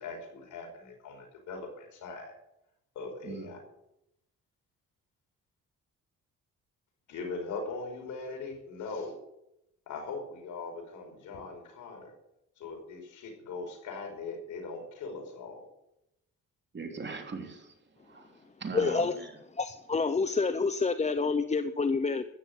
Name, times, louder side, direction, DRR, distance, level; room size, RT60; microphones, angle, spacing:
voice 1, 0.0-2.3 3.0-3.6 7.1-9.2 9.9-12.1 12.6-15.7, left 3 dB, 80° left, 4 dB, 5.2 m, -40 dB
voice 2, 16.7-17.7 18.0-19.3, right 4 dB, 35° right, 4 dB, 3.3 m, -40 dB
voice 3, 18.7-19.1 19.5-22.2, left 4 dB, 20° left, 10 dB, 0.8 m, -28 dB
13.5 x 10.0 x 8.4 m, 0.83 s
cardioid pair, 90°, 30 cm